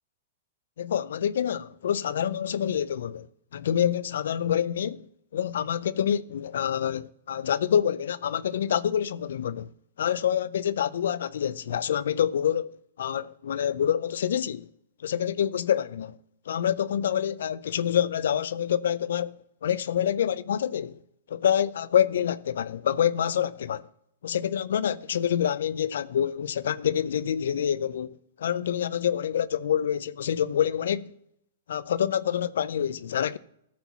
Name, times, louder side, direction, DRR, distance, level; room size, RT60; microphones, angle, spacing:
voice 1, 0.8-3.3 3.5-5.1 5.3-9.7 10.0-12.7 13.0-14.7 15.0-16.2 16.5-19.4 19.6-21.0 21.3-23.8 24.2-31.1 31.7-33.4, left 9 dB, 80° left, 0.5 m, -27 dB
13.5 x 4.5 x 6.9 m
hypercardioid pair, 135°, 0 cm